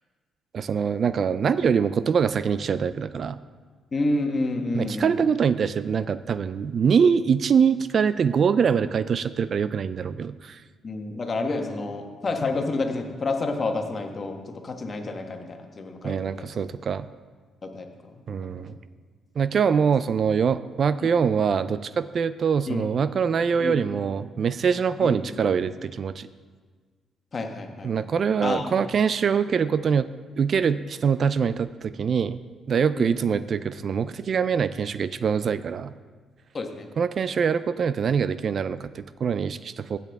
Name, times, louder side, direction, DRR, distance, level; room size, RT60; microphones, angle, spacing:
voice 1, 0.5-3.4 4.7-10.6 16.0-17.1 18.3-18.8 19.4-26.3 27.8-30.1 30.4-32.4 32.7-35.9 37.0-40.0, right 6 dB, 50° right, 14 dB, 0.3 m, -24 dB
voice 2, 3.9-5.2 10.8-16.5 17.6-18.6 21.0-21.1 22.7-22.9 23.6-23.8 25.0-25.3 27.3-28.7 33.0-33.2 36.5-36.9, left 2 dB, 40° left, 4 dB, 1.3 m, -30 dB
15.5 x 6.9 x 3.5 m, 1.5 s
cardioid pair, 90°, 0 cm